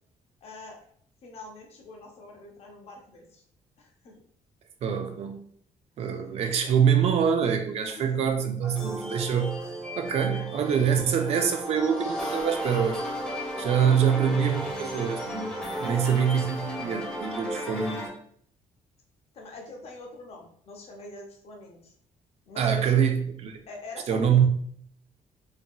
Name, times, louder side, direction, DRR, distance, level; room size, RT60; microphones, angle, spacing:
voice 1, 0.4-0.8 1.2-3.4 3.8-4.2 6.2-6.7 7.8-8.2 10.3-10.5 15.7-16.0 19.3-21.9 22.5-22.9 23.7-24.5, left 2 dB, 45° left, 0.6 m, -44 dB
voice 2, 4.8-5.5 6.0-9.5 10.0-13.0 13.6-15.5 15.8-18.1 22.6-23.7 24.1-24.5, right 7 dB, 50° right, 0.4 m, -25 dB
sound 1, 8.6-18.1, equal, 5° left, 0.6 m, -34 dB
2.8 x 2.6 x 2.2 m
cardioid pair, 165°, 14 cm